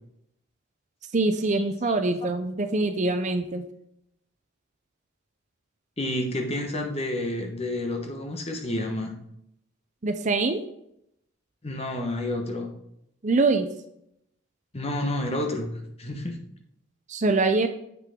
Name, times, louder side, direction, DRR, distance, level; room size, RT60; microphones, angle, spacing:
voice 1, 1.1-3.6 10.0-10.6 13.2-13.7 17.1-17.7, right 3 dB, 35° right, 7 dB, 0.6 m, -24 dB
voice 2, 6.0-9.1 11.6-12.7 14.7-16.4, left 1 dB, 30° left, 3 dB, 1.1 m, -30 dB
7.8 x 6.0 x 3.7 m, 0.76 s
head